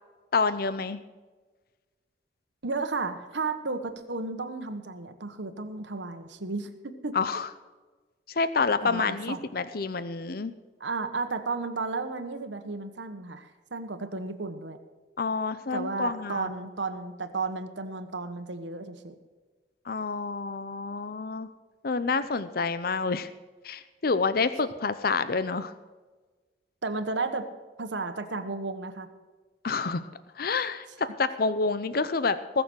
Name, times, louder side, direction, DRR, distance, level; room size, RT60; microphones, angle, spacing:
voice 1, 0.3-1.0 7.1-7.5 8.3-10.5 15.2-16.5 19.9-21.5 21.8-23.3 23.6-25.7 29.6-30.0 30.4-32.6, left 4 dB, 55° left, 13 dB, 0.6 m, -28 dB
voice 2, 2.6-7.2 8.8-9.4 10.8-14.8 15.7-19.1 26.8-27.5 27.8-29.1, right 3 dB, 85° right, 8 dB, 1.4 m, -33 dB
20.5 x 7.0 x 6.3 m, 1.3 s
head